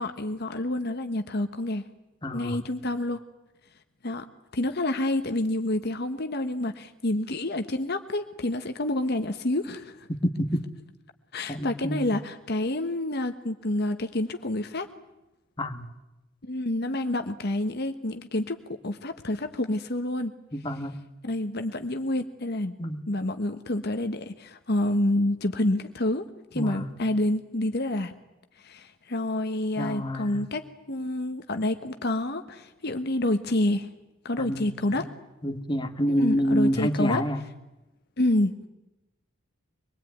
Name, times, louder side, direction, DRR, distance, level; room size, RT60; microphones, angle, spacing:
voice 1, 0.0-1.8 2.3-3.2 4.0-4.2 4.5-10.1 11.3-14.9 16.4-18.6 18.8-20.3 21.2-22.7 23.1-26.2 26.5-28.1 28.6-33.9 34.2-35.1 36.2-37.2 38.2-38.7, left 1 dB, 50° left, 8 dB, 1.2 m, -28 dB
voice 2, 2.2-2.6 10.1-10.6 11.5-12.1 15.6-15.9 20.5-21.0 22.8-23.0 26.5-26.9 29.8-30.4 34.4-35.0 35.4-37.4, equal, 20° left, 7 dB, 1.6 m, -28 dB
24.5 x 21.0 x 9.4 m, 0.98 s
head